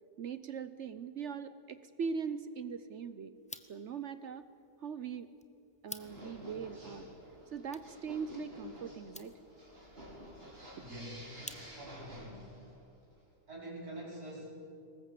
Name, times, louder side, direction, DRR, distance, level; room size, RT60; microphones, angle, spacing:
voice 1, 0.2-3.3 3.7-4.5 4.8-5.3 5.8-7.1 7.5-9.4, right 6 dB, 55° right, 13 dB, 1.0 m, -40 dB
sound 1, 3.4-12.1, left 1 dB, 5° left, 0.7 m, -54 dB
sound 2, 6.0-12.8, equal, 40° right, 4.9 m, -51 dB
voice 2, 10.7-12.5 13.5-14.5, right 1 dB, 75° right, -6 dB, 5.8 m, -46 dB
24.0 x 20.0 x 8.5 m, 2.6 s
omnidirectional pair, 1.6 m